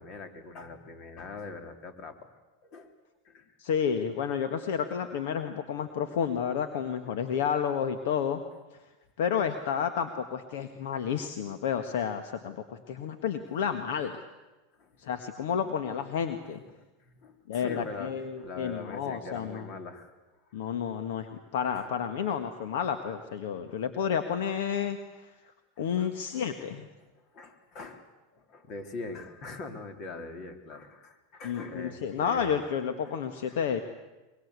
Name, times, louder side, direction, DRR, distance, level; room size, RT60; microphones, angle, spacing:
voice 1, 0.0-2.9 3.3-3.5 14.8-15.1 16.4-20.1 20.5-20.7 21.7-21.8 23.7-23.8 25.8-26.5 27.0-27.1 27.3-28.1 28.3-32.5 33.0-33.1 33.5-33.6, left 3 dB, 45° left, 6 dB, 3.7 m, -43 dB
voice 2, 3.6-8.4 8.7-8.8 9.2-14.2 15.0-16.6 17.5-19.7 20.5-25.3 25.8-26.9 31.4-33.8, left 7 dB, 70° left, 8 dB, 1.6 m, -31 dB
23.5 x 23.0 x 8.3 m, 1.1 s
hypercardioid pair, 100°, 0 cm